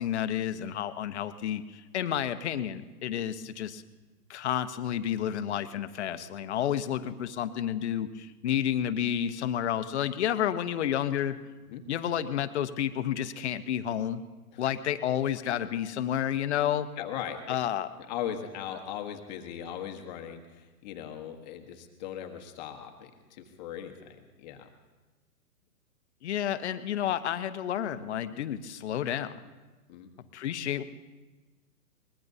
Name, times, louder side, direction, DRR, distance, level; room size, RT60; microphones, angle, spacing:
voice 1, 0.0-3.8 4.3-11.4 11.9-14.2 14.6-16.9 17.5-17.9 26.2-29.4 30.3-30.8, left 10 dB, 45° left, 10 dB, 0.9 m, -30 dB
voice 2, 17.0-17.6 18.0-24.7 29.9-30.1, left 9 dB, 30° left, 4 dB, 1.2 m, -39 dB
24.0 x 20.5 x 2.7 m, 1.2 s
hypercardioid pair, 145°, 47 cm